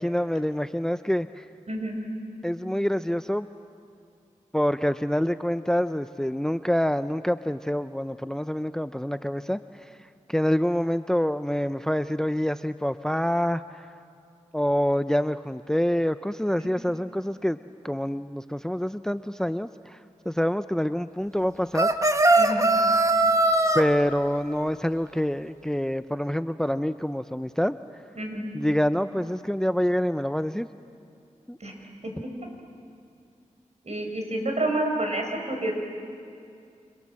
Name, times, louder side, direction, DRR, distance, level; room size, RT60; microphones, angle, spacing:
voice 1, 0.0-1.5 2.4-3.5 4.5-9.9 10.3-13.9 14.5-17.6 17.8-20.0 20.3-21.9 23.7-27.8 28.5-30.7 31.5-31.6, equal, 5° left, 12 dB, 0.6 m, -26 dB
sound 1, 21.7-23.8, right 2 dB, 25° right, 1.5 m, -20 dB
voice 2, 33.8-35.7, right 1 dB, 55° right, 2 dB, 5.8 m, -28 dB
29.5 x 25.5 x 7.6 m, 2.4 s
cardioid pair, 55°, 13 cm